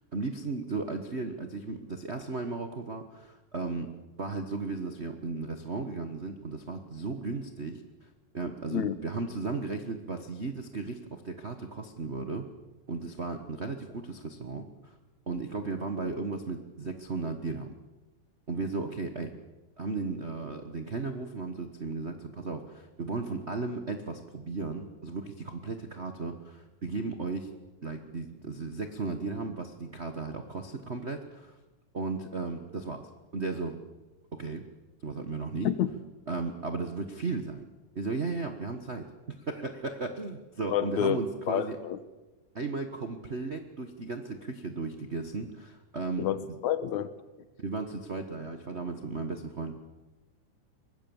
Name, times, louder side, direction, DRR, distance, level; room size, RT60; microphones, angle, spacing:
voice 1, 0.1-3.9 4.2-8.1 8.3-12.4 12.9-14.9 15.3-17.7 18.5-19.3 19.8-27.5 27.8-31.6 31.9-33.8 34.3-34.7 35.0-35.7 36.3-37.7 37.9-41.8 42.5-46.3 47.6-49.7, right 3 dB, 90° right, 0.6 m, -35 dB
voice 2, 40.7-41.2 41.5-42.0 46.2-47.1, left 10 dB, 70° left, 2.3 m, -28 dB
24.0 x 20.5 x 7.2 m
omnidirectional pair, 3.6 m